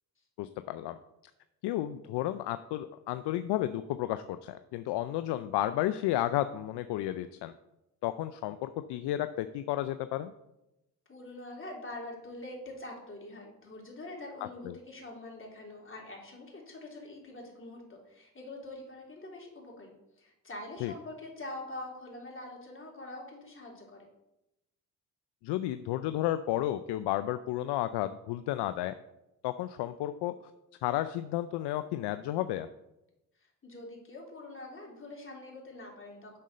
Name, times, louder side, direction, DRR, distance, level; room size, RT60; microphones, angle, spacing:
voice 1, 0.4-1.0 1.6-7.5 8.0-10.3 14.6-14.8 20.8-20.9 25.4-29.0 29.4-30.3 30.8-32.7, left 13 dB, 65° left, 11 dB, 0.5 m, -32 dB
voice 2, 11.1-19.9 20.2-24.1 33.4-36.4, left 2 dB, 25° left, -2 dB, 3.3 m, -44 dB
7.3 x 6.6 x 4.2 m, 0.91 s
hypercardioid pair, 50°, 45 cm